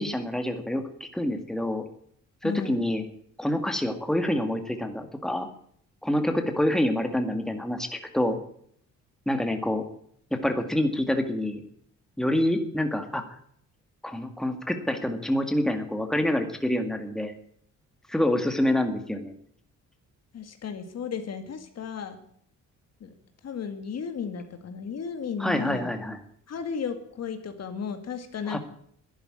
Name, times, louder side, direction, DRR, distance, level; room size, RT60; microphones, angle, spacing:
voice 1, 0.0-1.8 2.4-3.0 3.4-5.5 6.0-8.4 9.3-9.8 10.3-11.6 12.2-13.3 14.0-17.3 18.1-19.4 25.4-26.2 28.5-28.6, left 1 dB, ahead, 6 dB, 2.0 m, -27 dB
voice 2, 2.4-2.8 20.3-22.2 23.0-23.1 23.4-25.9 26.5-28.6, left 6 dB, 55° left, 8 dB, 2.1 m, -34 dB
11.5 x 10.5 x 8.8 m, 0.65 s
cardioid pair, 90°, 30 cm